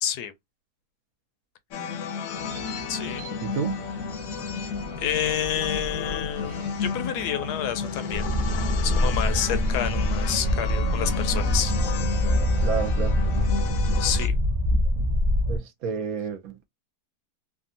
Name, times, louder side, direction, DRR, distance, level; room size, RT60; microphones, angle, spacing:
voice 1, 0.0-0.3 2.9-3.3 4.5-4.7 5.0-8.3 8.8-11.7 14.0-14.3, left 9 dB, 85° left, 1.2 m, -29 dB
sound 1, 1.7-14.3, left 6 dB, 70° left, 0.8 m, -33 dB
sound 2, 2.3-13.5, equal, 25° right, 0.7 m, -40 dB
voice 2, 3.4-3.9 12.6-13.2 15.0-15.1 15.5-16.6, right 6 dB, 70° right, 1.0 m, -30 dB
sound 3, 8.1-15.6, equal, 85° right, 0.4 m, -24 dB
3.4 x 2.1 x 2.5 m
omnidirectional pair, 1.7 m